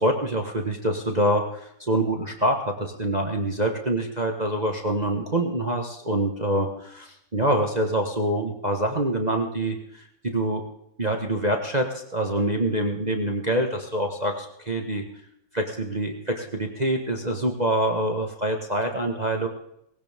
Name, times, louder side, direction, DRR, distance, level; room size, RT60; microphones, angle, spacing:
voice 1, 0.0-10.6 11.0-11.9 12.1-15.0 15.5-19.5, right 1 dB, 25° right, 2 dB, 1.3 m, -25 dB
19.5 x 17.0 x 3.6 m, 0.75 s
omnidirectional pair, 2.2 m